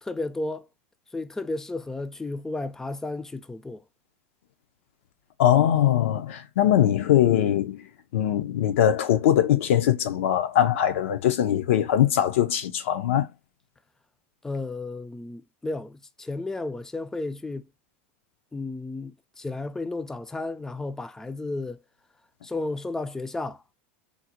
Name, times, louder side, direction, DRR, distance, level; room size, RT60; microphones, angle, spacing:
voice 1, 0.0-0.7 1.1-3.8 14.4-17.7 18.5-21.8 22.4-23.6, left 2 dB, 5° left, 0.3 m, -33 dB
voice 2, 5.4-7.9 8.1-13.3, left 11 dB, 80° left, 0.6 m, -21 dB
3.9 x 2.1 x 2.8 m
supercardioid pair, 115°, 7 cm